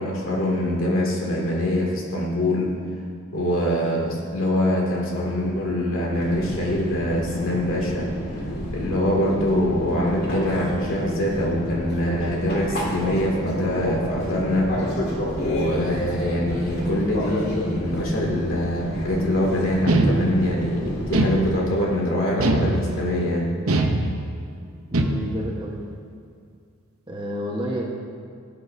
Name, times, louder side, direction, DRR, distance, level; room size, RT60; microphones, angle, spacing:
voice 1, 0.0-2.7 3.3-8.5 8.7-15.0 15.4-23.5, left 1 dB, 65° left, -3 dB, 2.5 m, -24 dB
Fixed-wing aircraft airplane, 6.1-21.5, equal, 50° left, 2.2 m, -29 dB
sound 1, 19.9-20.6 21.1-21.9 22.4-23.2 23.7-24.5 24.9-25.5, right 2 dB, 80° right, 0.9 m, -22 dB
voice 2, 24.9-25.8 27.1-27.9, equal, 20° right, -2 dB, 1.2 m, -29 dB
18.5 x 8.5 x 2.7 m, 2.3 s
head